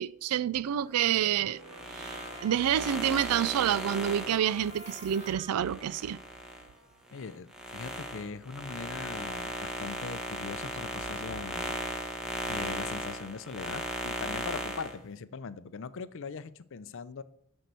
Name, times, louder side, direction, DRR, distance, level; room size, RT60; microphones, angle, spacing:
voice 1, 0.0-1.6 1.9-6.2, right 10 dB, 85° right, 0.4 m, -28 dB
Trumpet, 0.8-7.0, right 1 dB, 30° right, 1.8 m, -52 dB
sound 1, 1.1-7.8, right 2 dB, 45° right, 3.5 m, -56 dB
sound 2, 1.6-6.7 7.1-14.9, equal, 5° right, 1.2 m, -37 dB
voice 2, 7.1-11.8 12.5-17.2, left 5 dB, 60° left, 0.5 m, -41 dB
10.5 x 4.4 x 6.7 m
head